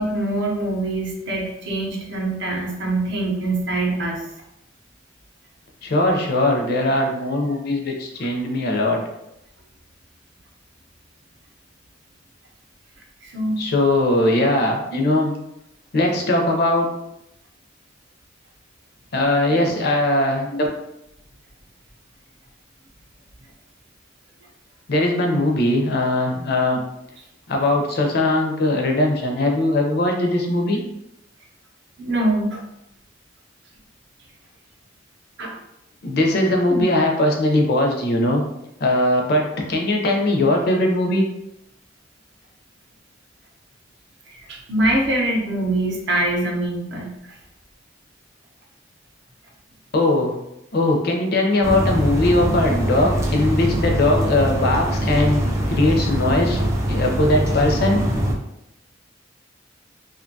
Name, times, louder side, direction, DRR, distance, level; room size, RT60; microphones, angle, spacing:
voice 1, 0.0-4.2 13.2-13.6 32.0-32.6 35.4-35.6 36.7-36.8 44.3-47.4, right 1 dB, 60° right, 0 dB, 0.6 m, -24 dB
voice 2, 5.8-9.0 13.6-15.3 15.9-16.9 19.1-20.7 24.9-26.8 27.5-30.8 36.0-38.4 38.8-41.2 49.9-50.4 50.7-55.4 55.7-58.0, left 1 dB, 55° left, 1 dB, 0.5 m, -20 dB
sound 1, 51.6-58.3, equal, 15° right, 0.3 m, -22 dB
2.5 x 2.2 x 2.6 m, 0.84 s
head